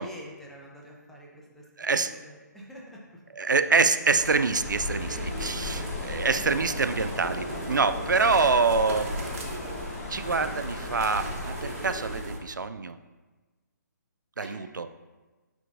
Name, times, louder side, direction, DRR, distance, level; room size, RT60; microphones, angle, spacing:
voice 1, 0.0-1.6 2.1-3.0 4.9-5.8 14.4-14.6, equal, 5° left, -4 dB, 0.7 m, -45 dB
voice 2, 1.8-2.1 3.3-9.1 10.1-13.0 14.4-14.9, right 4 dB, 75° right, 10 dB, 0.4 m, -26 dB
sound 1, 4.1-12.4, right 1 dB, 45° right, 1.2 m, -37 dB
sound 2, 4.6-12.2, left 3 dB, 45° left, 1.0 m, -37 dB
10.0 x 3.8 x 2.5 m, 1.3 s
figure-of-eight pair, 135°, 10 cm